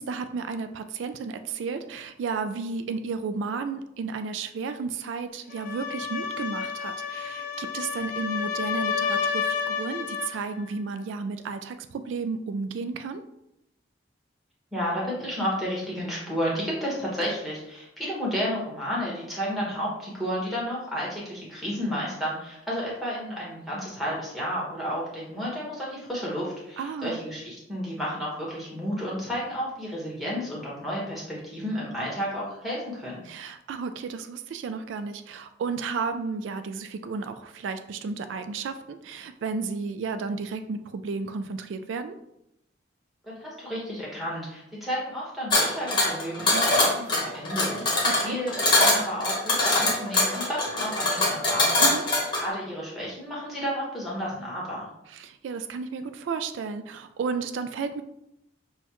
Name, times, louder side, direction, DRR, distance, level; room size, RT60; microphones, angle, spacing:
voice 1, 0.0-13.2 26.8-27.2 33.3-42.2 48.2-48.4 51.8-52.0 55.1-58.0, right 4 dB, 80° right, 10 dB, 0.3 m, -33 dB
sound 1, 5.5-10.4, left 6 dB, 45° left, 0.3 m, -30 dB
voice 2, 14.7-33.2 43.2-54.9, equal, ahead, -5 dB, 1.2 m, -32 dB
sound 2, 45.5-52.5, left 2 dB, 25° left, 0.9 m, -23 dB
6.2 x 2.3 x 2.9 m, 0.83 s
head